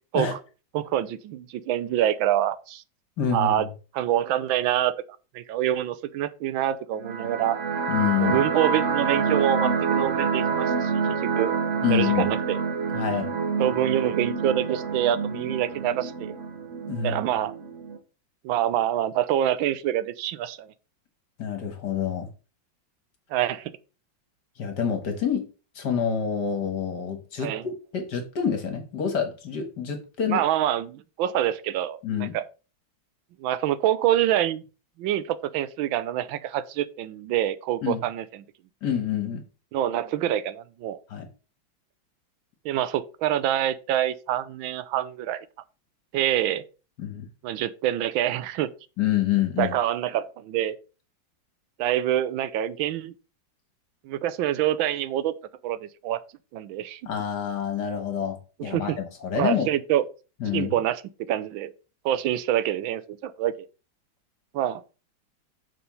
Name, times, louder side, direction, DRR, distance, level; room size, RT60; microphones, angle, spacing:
voice 1, 0.7-2.8 3.3-3.7 3.9-4.9 5.3-7.6 8.2-11.5 11.9-12.6 13.6-16.4 17.0-17.5 18.4-20.7 23.3-23.7 27.4-27.6 30.3-32.4 33.4-34.6 35.0-38.4 39.7-41.0 42.6-45.5 46.1-46.6 47.4-48.7 49.6-50.8 51.8-53.1 54.0-55.3 55.6-56.2 56.5-57.0 58.6-59.0 59.3-60.0 60.5-61.0 61.3-61.7 62.0-63.5 64.5-64.8, right 11 dB, 85° right, 1.4 m, -26 dB
voice 2, 3.2-3.7 7.9-8.4 11.8-12.3 12.9-13.3 16.9-17.2 21.4-22.3 24.6-25.5 25.8-30.4 32.0-32.4 37.8-38.0 38.8-39.4 41.1-41.3 47.0-47.3 49.0-49.8 57.1-59.7 60.4-60.7, left 8 dB, 60° left, 2.0 m, -27 dB
sound 1, 7.0-18.0, right 5 dB, 40° right, 1.4 m, -27 dB
6.8 x 4.5 x 5.3 m
omnidirectional pair, 2.1 m